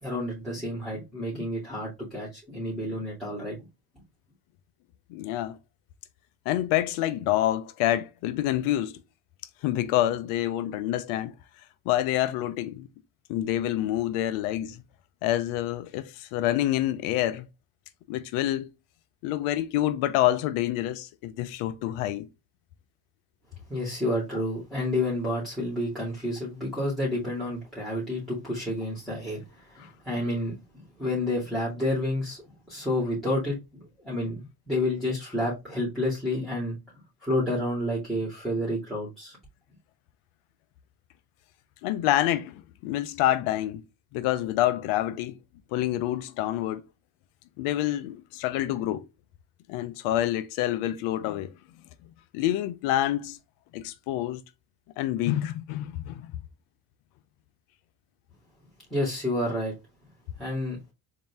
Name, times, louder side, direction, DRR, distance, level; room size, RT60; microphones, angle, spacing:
voice 1, 0.0-3.7 23.7-32.4 32.7-36.8 37.2-39.4 58.9-59.7 60.4-60.8, left 1 dB, ahead, 2.3 m, -30 dB
voice 2, 5.1-5.6 6.5-9.0 9.6-11.3 11.9-12.9 13.3-14.8 15.2-17.5 18.1-18.7 19.2-22.3 41.8-43.8 44.1-45.4 45.7-46.8 47.6-49.0 49.7-51.5 52.3-53.4 53.7-54.4 55.0-56.3, left 13 dB, 85° left, 0.6 m, -27 dB
3.9 x 2.8 x 3.4 m
supercardioid pair, 65°, 48 cm